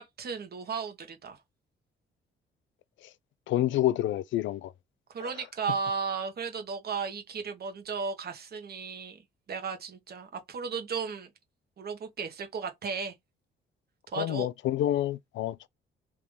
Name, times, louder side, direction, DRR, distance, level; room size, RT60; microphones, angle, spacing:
voice 1, 0.0-1.4 5.1-9.2 9.5-11.3 11.8-13.1 14.1-14.5, right 5 dB, 50° right, 1.3 m, -35 dB
voice 2, 3.5-4.7 5.2-5.3 14.1-15.7, left 13 dB, 75° left, 0.4 m, -28 dB
3.4 x 2.9 x 3.6 m
cardioid pair, 90°, 20 cm